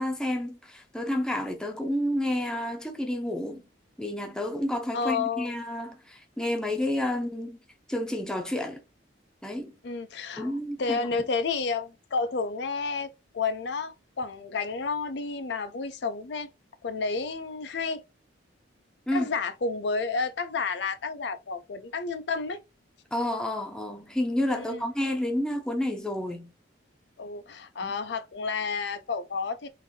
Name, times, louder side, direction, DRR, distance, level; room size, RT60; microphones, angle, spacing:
voice 1, 0.0-3.6 4.0-7.6 7.9-8.8 9.4-9.7 10.4-11.0 19.1-19.3 23.1-26.5 27.8-27.9, left 1 dB, 5° left, 0.6 m, -30 dB
voice 2, 4.9-5.5 9.8-10.5 10.8-16.5 16.8-18.0 19.1-22.6 24.5-24.8 27.2-29.7, left 4 dB, 60° left, 0.5 m, -31 dB
3.8 x 2.6 x 2.7 m
head